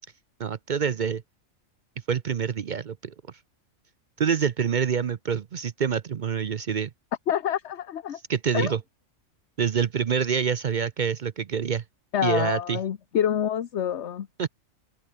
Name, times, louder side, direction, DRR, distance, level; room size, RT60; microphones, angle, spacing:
voice 1, 0.4-1.2 2.1-3.1 4.2-6.9 8.3-8.8 9.6-11.8 12.2-12.8 14.4-14.5, right 7 dB, 50° right, 0.6 m, -26 dB
voice 2, 7.3-8.2 8.5-8.7 12.1-14.3, left 9 dB, 60° left, 1.2 m, -27 dB
open air
omnidirectional pair, 1.4 m